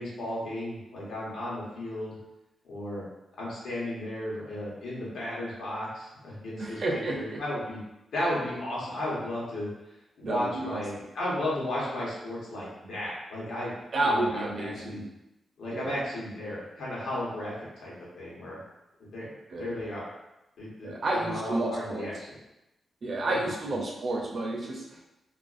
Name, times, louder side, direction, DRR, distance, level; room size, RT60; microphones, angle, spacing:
voice 1, 0.0-2.2 2.6-3.0 3.4-7.8 8.1-9.7 10.2-13.7 14.0-15.0 15.6-17.5 17.8-18.6 19.0-19.2 19.6-20.1 20.6-22.4 23.2-23.3 23.7-23.8, left 1 dB, 85° left, -6 dB, 1.0 m, -34 dB
voice 2, 6.6-7.4 10.2-10.8 13.9-15.0 15.7-16.0 19.5-19.7 20.8-22.1 23.0-25.0, right 2 dB, 45° right, 0 dB, 0.4 m, -30 dB
2.4 x 2.3 x 2.4 m, 0.93 s
wide cardioid pair, 150°, 0 cm